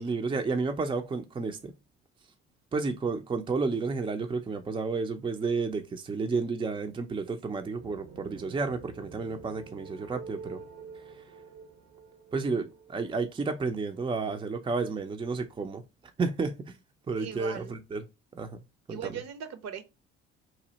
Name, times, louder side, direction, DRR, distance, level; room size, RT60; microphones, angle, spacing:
voice 1, 0.0-1.7 2.7-10.6 12.3-15.8 16.2-16.8 17.1-18.0 18.3-18.6 18.9-19.2, right 4 dB, 15° right, 0.5 m, -31 dB
sound 1, 7.8-13.6, right 5 dB, 85° right, 1.4 m, -47 dB
voice 2, 17.2-17.8 18.9-19.8, right 8 dB, 50° right, 0.8 m, -39 dB
3.0 x 2.7 x 3.9 m
hypercardioid pair, 60°, 33 cm